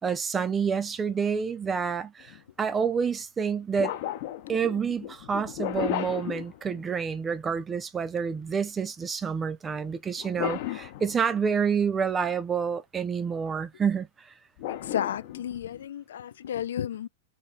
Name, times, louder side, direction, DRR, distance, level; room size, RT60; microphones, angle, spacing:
voice 1, 0.0-3.9 4.5-14.3, right 6 dB, 15° right, 0.3 m, -28 dB
sound 1, 2.2-2.4 3.8-7.2 10.2-11.6 14.6-15.8, left 12 dB, 40° left, 0.7 m, -34 dB
voice 2, 14.7-17.1, left 10 dB, 75° left, 0.3 m, -32 dB
3.2 x 2.6 x 4.0 m
hypercardioid pair, 155°, 0 cm